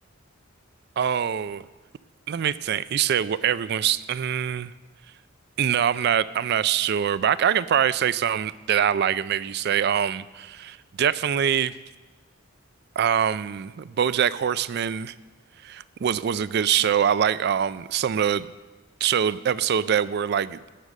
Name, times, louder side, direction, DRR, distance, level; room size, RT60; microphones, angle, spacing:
voice 1, 1.0-1.7 2.3-4.7 5.6-11.7 13.0-15.1 15.6-18.5 19.0-20.6, right 8 dB, 50° right, 17 dB, 0.3 m, -24 dB
11.0 x 6.7 x 7.3 m, 1.3 s
head